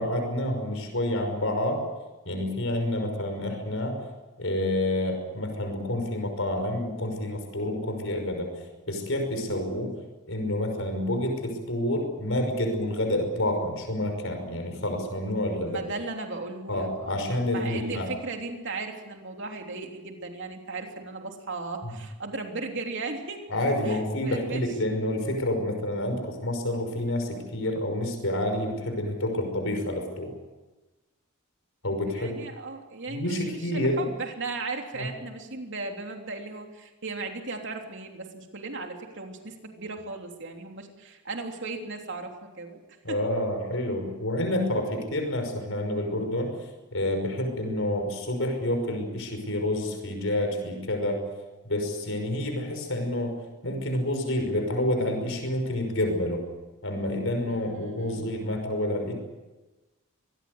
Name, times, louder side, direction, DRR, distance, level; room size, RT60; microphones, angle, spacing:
voice 1, 0.0-1.8 2.3-4.0 4.4-8.5 8.9-9.9 10.3-15.8 16.7-18.1 21.8-21.9 23.5-30.3 31.8-32.3 33.1-34.0 35.0-35.1 43.0-46.5 46.9-51.2 51.6-53.4 53.6-56.4 56.8-59.1, left 1 dB, 60° left, 5 dB, 5.7 m, -28 dB
voice 2, 15.7-23.4 23.8-24.6 32.0-42.8 43.1-43.2 57.5-58.2, right 3 dB, 55° right, 3 dB, 3.3 m, -36 dB
24.5 x 20.0 x 8.1 m, 1.2 s
head